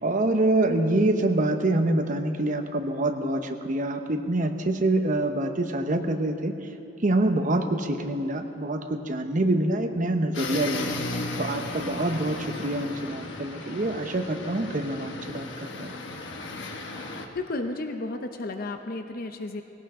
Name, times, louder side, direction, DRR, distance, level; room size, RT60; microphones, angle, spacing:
voice 1, 0.0-6.5 7.0-11.0 11.4-15.9, right 1 dB, 45° right, 6 dB, 1.0 m, -26 dB
sound 1, 10.3-17.3, left 2 dB, 70° left, 1.2 m, -35 dB
voice 2, 17.3-19.6, left 2 dB, 50° left, 6 dB, 0.7 m, -32 dB
19.0 x 17.0 x 3.8 m, 2.7 s
head